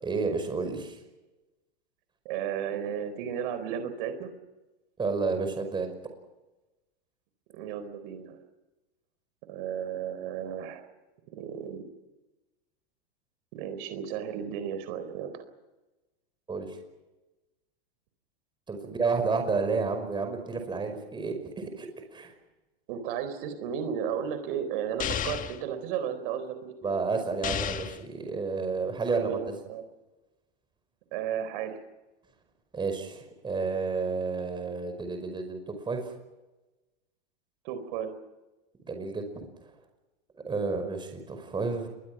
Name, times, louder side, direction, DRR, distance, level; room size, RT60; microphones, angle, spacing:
voice 1, 0.0-1.0 5.0-5.9 16.5-16.8 18.7-22.3 26.8-29.4 32.7-36.1 38.8-39.5 40.5-41.9, right 4 dB, 15° right, 6 dB, 5.4 m, -31 dB
voice 2, 2.2-4.3 7.5-8.4 9.5-10.9 11.3-11.8 13.5-15.4 22.9-27.1 29.2-29.8 31.1-31.8 37.6-38.1, right 8 dB, 55° right, 10 dB, 4.2 m, -34 dB
sound 1, 25.0-25.6 27.4-28.0, left 9 dB, 25° left, 1.5 m, -32 dB
28.5 x 22.0 x 6.1 m, 1.1 s
hypercardioid pair, 125°, 31 cm